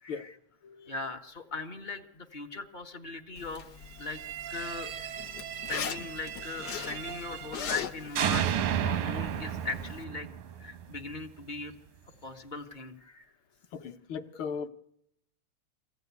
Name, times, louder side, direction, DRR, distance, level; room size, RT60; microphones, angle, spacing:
voice 1, 0.0-0.3 0.9-3.6 4.0-4.2 4.5-5.2 5.7-10.3 10.6-11.7 12.2-13.3, left 3 dB, 35° left, 4 dB, 0.7 m, -39 dB
voice 2, 0.6-0.9 13.7-14.7, left 6 dB, 60° left, 7 dB, 1.5 m, -37 dB
Zipper (clothing), 3.4-10.0, left 8 dB, 80° left, 0.9 m, -41 dB
sound 1, 4.0-7.8 8.2-11.2, right 10 dB, 85° right, 2.5 m, -34 dB
25.5 x 16.0 x 9.5 m, 0.77 s
omnidirectional pair, 3.3 m